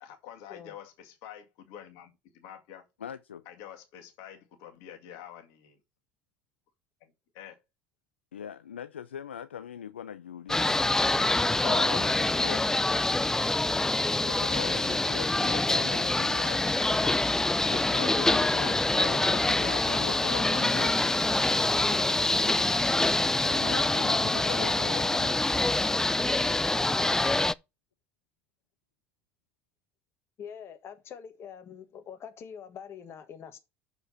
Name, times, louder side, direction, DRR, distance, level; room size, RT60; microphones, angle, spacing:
voice 1, 0.0-2.8 3.5-5.8 7.0-7.6 12.3-12.6, left 10 dB, 65° left, 2.1 m, -47 dB
voice 2, 3.0-3.5 8.3-10.8 11.5-12.8 14.2-17.3 17.6-21.3 21.7-22.6 23.4-25.4, left 9 dB, 85° left, 0.4 m, -41 dB
sound 1, 10.5-27.5, left 2 dB, 10° left, 0.3 m, -25 dB
voice 3, 30.4-33.6, left 7 dB, 45° left, 1.5 m, -44 dB
6.8 x 5.0 x 5.5 m
hypercardioid pair, 70°, 6 cm